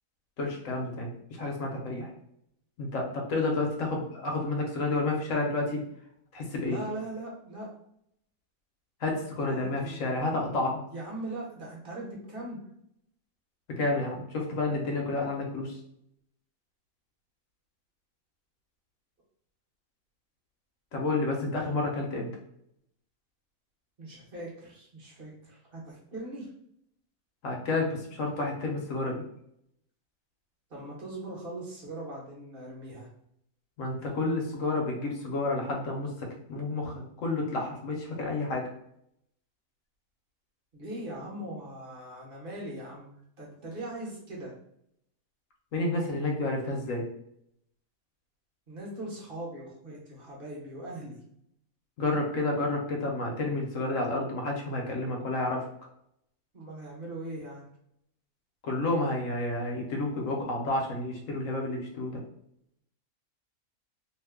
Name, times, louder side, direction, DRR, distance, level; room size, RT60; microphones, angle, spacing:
voice 1, 0.4-2.1 2.8-5.8 6.3-6.8 9.0-10.8 13.7-15.8 20.9-22.3 27.4-29.2 33.8-38.6 45.7-47.0 52.0-55.6 58.6-62.2, left 2 dB, 65° left, 0 dB, 1.1 m, -30 dB
voice 2, 6.7-7.7 9.5-10.0 10.9-12.6 24.0-26.5 30.7-33.1 40.7-44.5 48.7-51.2 56.5-57.6, right 1 dB, 40° right, -4 dB, 1.1 m, -40 dB
2.9 x 2.3 x 3.4 m, 0.72 s
omnidirectional pair, 1.6 m